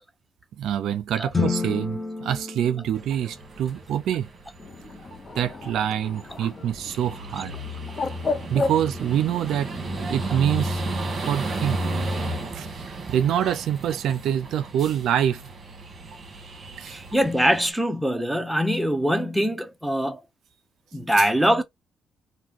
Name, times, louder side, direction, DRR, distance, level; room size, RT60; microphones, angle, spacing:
voice 1, 0.6-4.3 5.3-7.6 8.5-9.7 10.1-10.8 11.3-11.8 12.5-15.4 16.8-17.0 21.2-21.3, right 10 dB, 80° right, 0.4 m, -25 dB
sound 1, 1.3-3.7, left 4 dB, 25° left, 1.0 m, -29 dB
sound 2, 2.9-17.7, right 1 dB, 45° right, 1.1 m, -34 dB
Bird, 4.6-10.1, left 4 dB, 40° left, 0.6 m, -34 dB
voice 2, 16.9-20.2 20.9-21.6, equal, 5° right, 0.7 m, -23 dB
2.9 x 2.2 x 3.5 m
cardioid pair, 90°, 0 cm